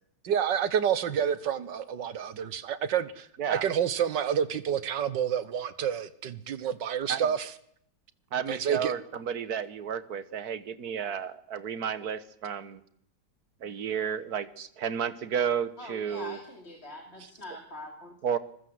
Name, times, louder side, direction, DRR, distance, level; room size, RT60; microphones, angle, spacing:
voice 1, 0.2-7.5 8.5-8.9 14.6-14.7, right 8 dB, 85° right, 15 dB, 1.9 m, -29 dB
voice 2, 8.3-12.8 13.6-14.5 14.8-16.4 18.2-18.4, right 7 dB, 60° right, 15 dB, 1.6 m, -32 dB
voice 3, 15.8-18.2, left 1 dB, 35° left, 2 dB, 2.9 m, -43 dB
24.5 x 21.0 x 7.9 m, 0.69 s
omnidirectional pair, 1.9 m